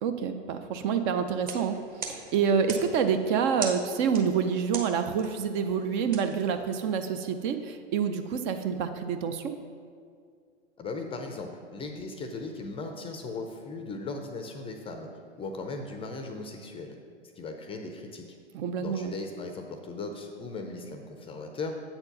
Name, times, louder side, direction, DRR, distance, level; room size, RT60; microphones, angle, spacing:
voice 1, 0.0-9.5 18.5-19.1, right 7 dB, 40° right, 8 dB, 0.5 m, -27 dB
sound 1, 1.3-7.1, right 4 dB, 25° right, 1.0 m, -42 dB
voice 2, 10.8-15.1 15.4-17.0 17.4-18.3 18.8-21.7, left 3 dB, 15° left, 5 dB, 0.5 m, -37 dB
7.7 x 4.4 x 5.8 m, 2.2 s
hypercardioid pair, 105°, 36 cm